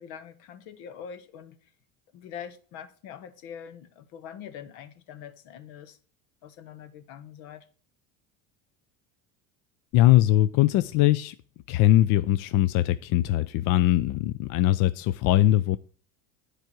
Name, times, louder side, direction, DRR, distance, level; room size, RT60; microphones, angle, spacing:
voice 1, 0.0-1.6 2.1-6.0 6.4-7.7, left 8 dB, 75° left, 1.2 m, -43 dB
voice 2, 9.9-11.3 11.7-15.8, left 14 dB, 55° left, 0.4 m, -21 dB
9.1 x 4.9 x 5.9 m
supercardioid pair, 120°, 39 cm